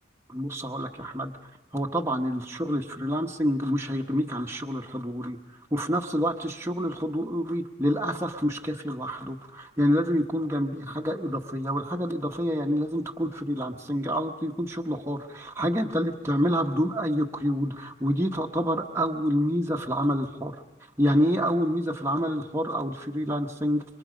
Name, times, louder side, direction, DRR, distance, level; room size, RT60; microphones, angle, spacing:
voice 1, 0.3-1.3 1.7-5.4 5.7-20.5 21.0-23.8, equal, 15° right, 0 dB, 1.1 m, -27 dB
26.5 x 24.0 x 5.1 m, 0.98 s
head